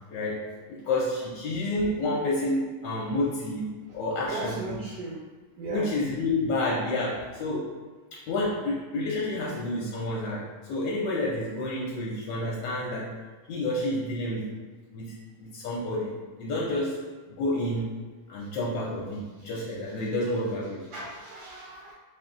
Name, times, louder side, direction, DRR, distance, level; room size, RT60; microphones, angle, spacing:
voice 1, 0.1-4.8 5.7-7.7 8.1-13.1 13.5-14.5 14.9-15.1 15.4-16.1 16.4-17.0 17.3-18.0 18.3-20.8, left 1 dB, 70° left, -4 dB, 1.2 m, -29 dB
voice 2, 4.3-5.2 5.6-5.9 18.4-18.5 19.4-19.5 20.9-21.9, right 3 dB, 75° right, -3 dB, 1.2 m, -37 dB
3.6 x 2.6 x 3.7 m, 1.4 s
omnidirectional pair, 2.2 m